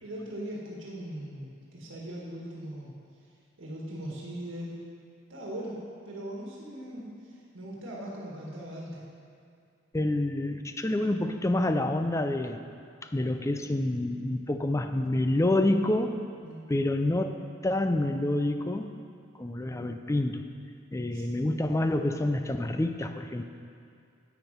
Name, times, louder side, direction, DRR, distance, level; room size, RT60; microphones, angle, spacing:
voice 1, 0.0-2.9 3.6-4.8 5.3-5.8 6.1-9.0 16.4-16.6 21.1-21.3, right 1 dB, 75° right, -4 dB, 1.7 m, -40 dB
voice 2, 9.9-12.6 13.1-16.2 16.7-18.9 19.4-20.5 20.9-23.4, left 1 dB, 15° left, 7 dB, 0.4 m, -28 dB
10.5 x 8.2 x 5.2 m, 2.3 s
head